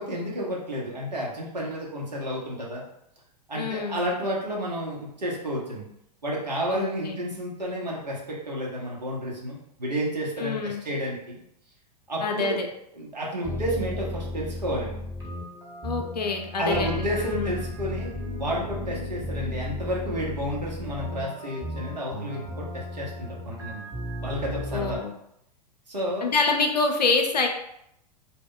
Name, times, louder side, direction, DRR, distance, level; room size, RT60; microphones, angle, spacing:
voice 1, 0.0-2.8 3.5-5.9 6.2-11.4 12.1-12.6 13.0-15.0 16.6-18.1 18.4-23.9 24.2-25.0 25.9-26.3, equal, 80° right, -3 dB, 0.8 m, -31 dB
voice 2, 3.5-4.0 6.7-7.2 10.4-10.8 12.2-12.7 15.8-17.5 24.7-25.1 26.2-27.5, left 4 dB, 75° left, 3 dB, 0.5 m, -26 dB
sound 1, 13.4-25.0, left 1 dB, 15° right, 0.9 m, -35 dB
2.2 x 2.1 x 3.7 m, 0.76 s
figure-of-eight pair, 95°, 21 cm